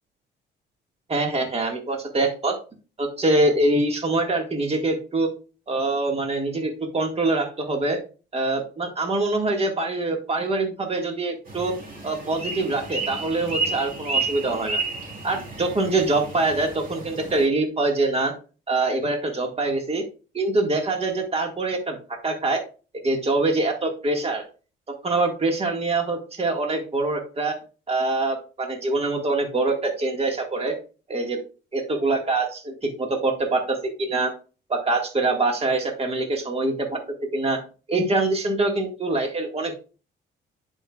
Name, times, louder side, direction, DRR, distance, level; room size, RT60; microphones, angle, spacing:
voice 1, 1.1-2.6 3.0-5.3 5.7-8.0 8.3-11.7 12.0-14.8 15.2-18.3 18.7-20.0 20.3-22.6 23.0-24.5 25.0-27.6 27.9-30.8 31.1-31.4 31.7-34.3 34.7-37.0 37.3-37.6 37.9-39.8, right 2 dB, 30° right, 2 dB, 1.8 m, -24 dB
sound 1, 11.5-17.5, right 3 dB, 45° right, 3.7 m, -31 dB
9.9 x 5.5 x 2.4 m, 0.35 s
cardioid pair, 90°, 20 cm